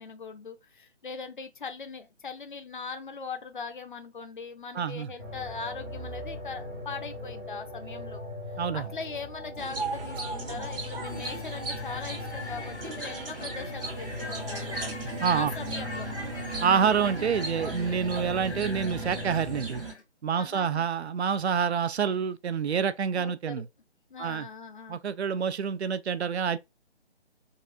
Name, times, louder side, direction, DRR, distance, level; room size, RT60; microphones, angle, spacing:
voice 1, 0.0-8.2 8.7-14.9 15.3-16.1 20.3-20.9 23.1-23.6 24.1-25.0, left 5 dB, 45° left, 0.6 m, -40 dB
voice 2, 4.7-5.1 8.6-8.8 15.2-15.5 16.6-19.8 20.2-23.7 24.2-24.5 24.9-26.6, right 7 dB, 70° right, 0.5 m, -27 dB
sound 1, 5.2-19.6, left 2 dB, 5° left, 0.6 m, -40 dB
sound 2, 9.6-19.9, right 3 dB, 55° right, 1.2 m, -37 dB
sound 3, 11.0-20.0, left 2 dB, 75° left, 1.3 m, -43 dB
3.9 x 2.3 x 2.6 m
figure-of-eight pair, 150°, 34 cm